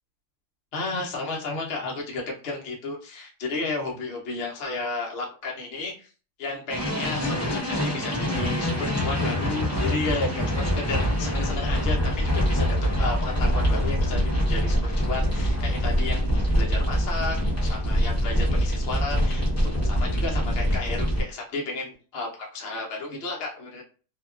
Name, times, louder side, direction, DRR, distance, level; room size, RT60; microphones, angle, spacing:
voice 1, 0.7-6.1 6.4-12.7 13.0-16.3 16.5-23.8, left 3 dB, 65° left, -1 dB, 0.6 m, -33 dB
sound 1, 6.7-21.2, equal, 15° left, 0.5 m, -24 dB
2.7 x 2.2 x 2.3 m, 0.36 s
omnidirectional pair, 1.7 m